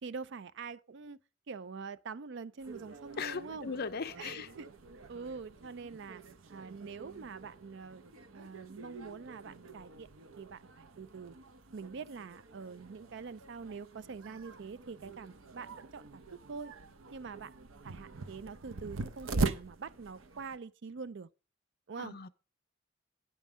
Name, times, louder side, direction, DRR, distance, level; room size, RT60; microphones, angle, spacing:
voice 1, 0.0-1.2 1.5-3.7 4.2-4.7 5.1-6.2 6.5-8.0 8.3-10.1 10.4-11.4 11.7-16.2 16.5-16.7 17.1-17.5 17.8-21.3 21.9-22.2, right 5 dB, 60° right, 0.5 m, -45 dB
sound 1, 2.6-20.6, right 3 dB, 85° right, 0.8 m, -43 dB
voice 2, 3.2-4.5 22.0-22.3, left 5 dB, 50° left, 0.6 m, -38 dB
9.4 x 5.5 x 6.1 m
head